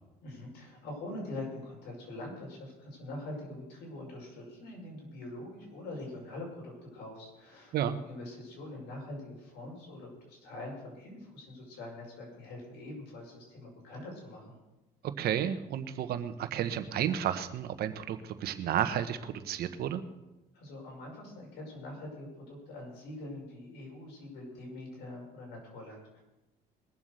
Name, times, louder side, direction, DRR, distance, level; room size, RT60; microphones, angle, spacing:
voice 1, 0.2-14.6 20.5-26.2, left 2 dB, 85° left, -1 dB, 5.8 m, -44 dB
voice 2, 15.2-20.0, right 10 dB, 70° right, 10 dB, 1.2 m, -32 dB
21.0 x 7.3 x 6.6 m, 1.0 s
cardioid pair, 110°, 17 cm